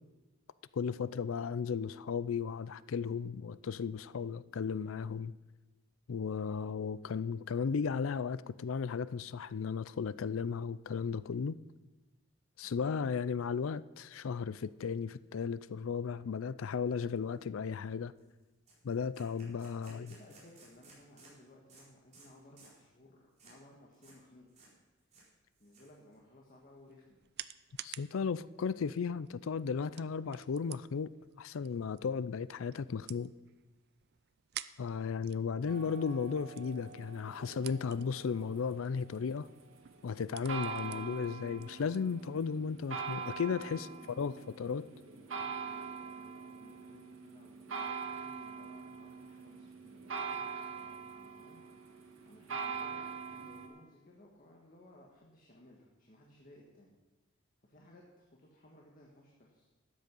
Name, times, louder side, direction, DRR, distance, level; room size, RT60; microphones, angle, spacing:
voice 1, 0.7-5.3 6.1-11.6 12.6-18.1 18.8-20.1 27.8-31.1 31.4-33.3 34.8-39.5 40.0-43.9 44.2-44.9, left 6 dB, 80° left, 0.4 m, -35 dB
voice 2, 12.6-12.9 19.7-24.8 25.1-25.3 25.6-27.2 43.7-44.4 45.4-50.2 51.0-51.6 52.2-56.9 57.6-59.7, left 1 dB, 45° left, 1.7 m, -59 dB
sound 1, 17.3-17.4 17.7-17.9 18.2-18.3 18.7-21.4 21.7-21.9 22.1-22.3 22.6-22.8 23.4-23.6 23.9-24.2 24.5-24.7 25.0-26.2, right 3 dB, 35° right, 4.5 m, -59 dB
sound 2, 26.5-42.9, right 13 dB, 55° right, 0.4 m, -53 dB
sound 3, 35.7-53.7, right 5 dB, 80° right, 1.7 m, -43 dB
13.0 x 9.2 x 5.4 m
head